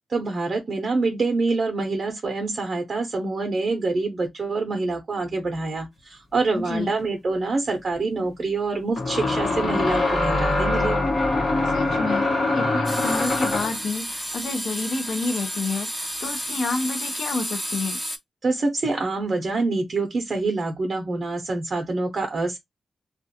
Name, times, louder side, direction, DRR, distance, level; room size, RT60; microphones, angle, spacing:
voice 1, 0.1-11.0 18.4-22.6, right 3 dB, 45° right, 0.5 m, -26 dB
voice 2, 6.5-6.9 11.7-12.3 12.5-18.0, left 3 dB, 80° left, 0.5 m, -29 dB
sound 1, 7.0-7.1 9.0-13.8, left 2 dB, 55° left, 1.0 m, -23 dB
sound 2, 12.9-18.2, equal, 5° left, 0.5 m, -31 dB
2.4 x 2.2 x 2.7 m
wide cardioid pair, 105°, 0 cm